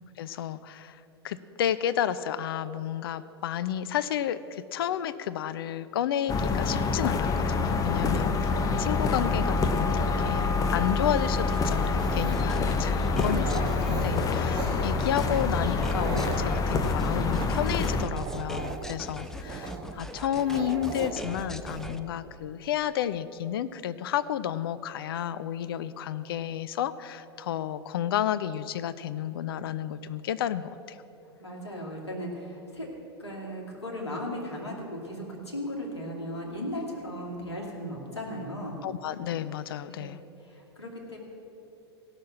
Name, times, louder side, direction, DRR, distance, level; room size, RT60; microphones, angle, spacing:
voice 1, 0.2-31.0 38.8-40.2, left 10 dB, 60° left, 14 dB, 0.5 m, -31 dB
sound 1, 6.3-18.0, left 4 dB, 25° left, 0.9 m, -26 dB
sound 2, 11.3-22.0, left 1 dB, 5° left, 0.5 m, -42 dB
Dog, 11.6-21.9, right 4 dB, 35° right, 2.3 m, -38 dB
voice 2, 31.4-32.9 33.2-38.8 39.9-40.2 40.5-41.2, equal, 85° left, -2 dB, 2.5 m, -37 dB
16.0 x 6.5 x 7.1 m, 2.9 s
figure-of-eight pair, 90°, 14 cm